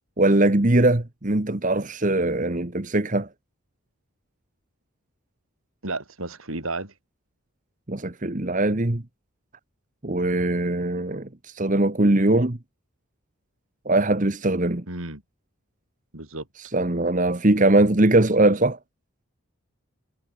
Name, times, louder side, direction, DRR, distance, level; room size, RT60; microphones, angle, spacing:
voice 1, 0.2-3.3 7.9-9.0 10.0-12.6 13.8-14.8 16.7-18.8, right 2 dB, 35° right, 1.3 m, -21 dB
voice 2, 5.8-6.9 14.9-15.2 16.1-16.5, right 2 dB, 75° right, 5.2 m, -32 dB
head